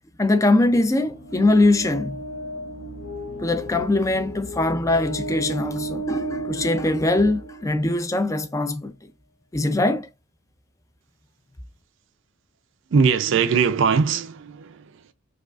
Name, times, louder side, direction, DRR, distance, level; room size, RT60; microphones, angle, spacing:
voice 1, 0.2-2.2 3.4-8.9 9.5-10.1, left 2 dB, 15° left, 0.3 m, -21 dB
sound 1, 1.1-8.0, right 2 dB, 60° left, 0.7 m, -34 dB
voice 2, 12.9-15.1, right 5 dB, 60° right, 0.4 m, -21 dB
4.7 x 2.4 x 2.3 m
head